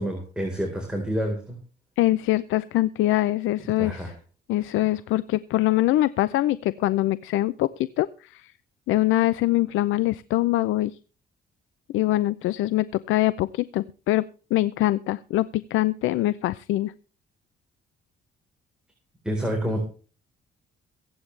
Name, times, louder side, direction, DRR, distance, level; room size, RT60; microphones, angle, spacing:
voice 1, 0.0-1.4 3.8-4.1 19.2-19.8, equal, 5° right, 1 dB, 4.0 m, -28 dB
voice 2, 2.0-4.1 4.5-8.5 8.9-11.0 11.9-16.9, left 16 dB, 85° left, 17 dB, 0.5 m, -24 dB
23.0 x 8.8 x 3.3 m, 0.38 s
cardioid pair, 90°, 20 cm